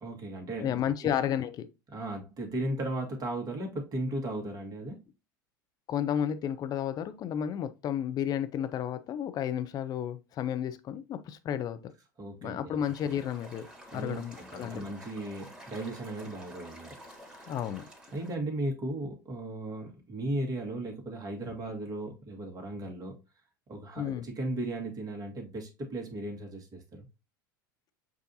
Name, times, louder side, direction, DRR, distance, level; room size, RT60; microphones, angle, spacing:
voice 1, 0.0-0.8 1.9-5.0 12.2-12.8 13.9-17.0 17.4-17.5 18.1-23.2 23.7-27.0, right 1 dB, 35° right, 1.7 m, -36 dB
voice 2, 0.6-1.7 5.9-11.9 12.4-13.7 13.9-14.8 17.5-17.8 24.0-24.3, left 9 dB, 35° left, 0.5 m, -32 dB
sound 1, 12.8-18.3, equal, 10° right, 1.8 m, -50 dB
7.2 x 2.6 x 2.7 m
hypercardioid pair, 90°, 11 cm